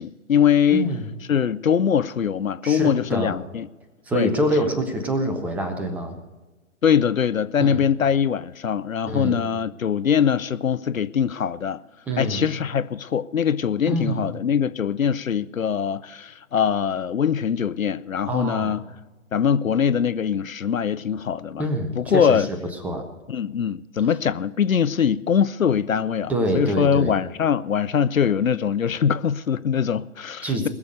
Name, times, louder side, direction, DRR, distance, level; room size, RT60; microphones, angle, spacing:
voice 1, 0.0-0.9 1.3-3.7 4.1-4.3 6.8-11.8 12.2-18.8 19.3-21.6 22.0-22.5 23.3-30.7, left 8 dB, 85° left, 0.6 m, -22 dB
voice 2, 0.7-1.1 2.6-3.4 4.1-6.2 7.6-7.8 9.1-9.4 12.1-12.4 13.9-14.3 18.3-18.8 21.6-22.6 22.8-23.1 26.3-27.2 30.4-30.7, right 1 dB, 5° right, 0.6 m, -25 dB
20.5 x 7.0 x 6.4 m
figure-of-eight pair, 130°, 40 cm